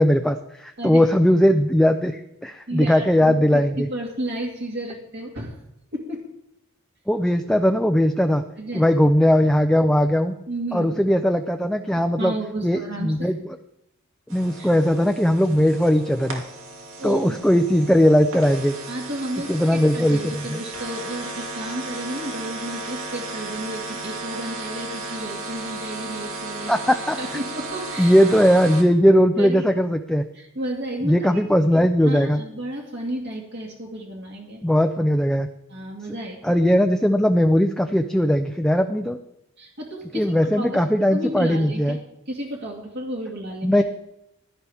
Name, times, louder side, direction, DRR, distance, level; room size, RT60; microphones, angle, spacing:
voice 1, 0.0-3.9 7.1-8.4 8.7-10.3 10.7-12.3 12.6-13.4 14.3-16.4 17.0-18.8 19.5-20.6 26.7-27.2 28.0-30.2 31.0-32.4 34.6-35.5 36.4-39.2 40.1-42.0 43.6-43.8, equal, 5° left, 5 dB, 0.5 m, -19 dB
voice 2, 2.7-5.5 5.9-6.3 8.6-8.8 10.5-10.9 12.2-13.3 14.6-14.7 17.0-17.3 18.9-26.7 27.2-28.2 29.4-29.7 30.3-31.3 32.0-34.6 35.7-36.4 39.6-40.8 41.1-42.0 42.3-43.8, right 1 dB, 55° right, -1 dB, 2.1 m, -32 dB
sound 1, 14.3-28.8, right 2 dB, 85° right, 2.5 m, -35 dB
16.0 x 11.5 x 3.5 m, 0.81 s
head